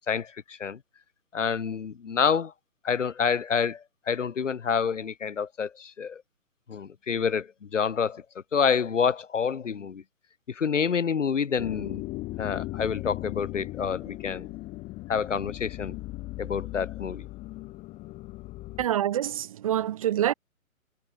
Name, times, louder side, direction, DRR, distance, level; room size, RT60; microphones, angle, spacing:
voice 1, 0.1-0.8 1.3-2.5 2.8-6.2 6.7-8.2 8.5-10.0 10.5-12.0 12.4-14.5 15.1-16.0 16.4-17.2, left 6 dB, 60° left, 2.7 m, -28 dB
sound 1, 11.6-18.9, left 19 dB, 15° left, 3.3 m, -38 dB
voice 2, 18.8-20.3, right 11 dB, 25° right, 0.9 m, -26 dB
figure-of-eight pair, 140°, 42 cm